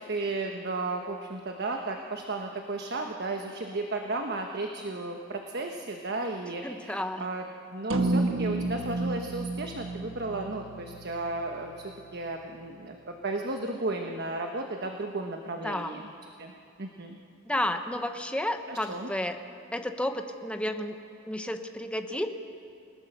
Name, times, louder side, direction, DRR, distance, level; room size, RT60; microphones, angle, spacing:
voice 1, 0.1-7.5 7.7-16.1 16.4-16.5 16.8-17.2 18.7-19.1, right 2 dB, 55° right, 3 dB, 1.3 m, -34 dB
voice 2, 6.6-7.3 15.6-16.0 17.5-19.4 19.7-21.0 21.3-22.3, left 1 dB, 5° left, 6 dB, 1.0 m, -31 dB
sound 1, 7.9-12.4, right 2 dB, 80° right, 1.4 m, -31 dB
29.0 x 18.0 x 6.8 m, 2.5 s
head